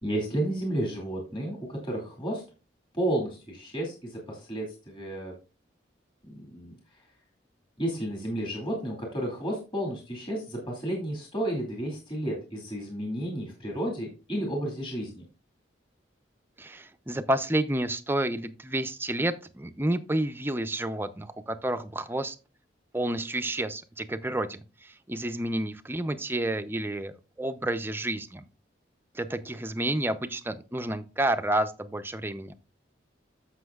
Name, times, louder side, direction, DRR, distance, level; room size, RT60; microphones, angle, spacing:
voice 1, 0.0-2.4 2.9-5.3 6.2-6.7 7.8-15.2, right 1 dB, 25° left, -1 dB, 2.3 m, -32 dB
voice 2, 16.6-22.4 22.9-28.4 29.1-32.5, right 1 dB, 10° right, 9 dB, 0.5 m, -30 dB
14.0 x 5.7 x 2.3 m, 0.33 s
head